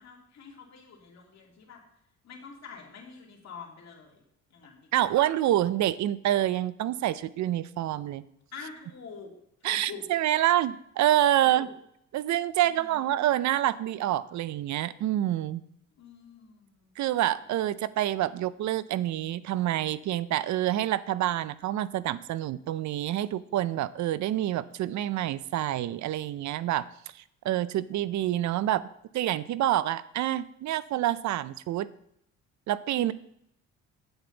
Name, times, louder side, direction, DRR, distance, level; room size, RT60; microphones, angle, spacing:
voice 1, 0.0-1.8 2.2-4.2 4.5-5.2 8.5-9.3 9.6-10.0 11.4-11.7 12.6-13.2 16.0-16.9 17.4-17.9 32.9-33.1, left 5 dB, 60° left, 0 dB, 2.5 m, -47 dB
voice 2, 4.9-8.2 9.6-11.7 12.1-15.6 17.0-26.9 27.4-28.8 29.1-31.9 32.7-33.1, right 13 dB, 70° right, 17 dB, 0.5 m, -27 dB
8.8 x 7.9 x 3.9 m, 0.74 s
cardioid pair, 90°, 30 cm